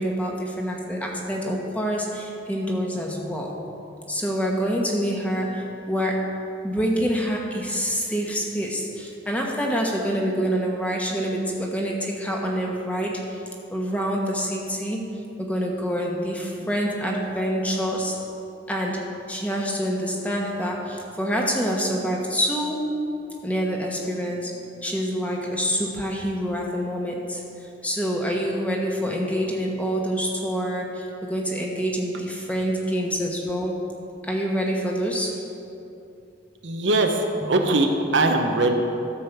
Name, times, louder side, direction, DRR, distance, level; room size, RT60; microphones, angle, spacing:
voice 1, 0.0-3.6 4.1-6.3 6.6-13.4 13.7-18.2 18.7-22.9 23.4-33.8 34.2-35.4 37.4-37.8, equal, 10° left, -1 dB, 1.2 m, -26 dB
voice 2, 36.6-38.7, right 2 dB, 80° right, 4 dB, 1.0 m, -21 dB
13.0 x 5.1 x 7.1 m, 2.7 s
head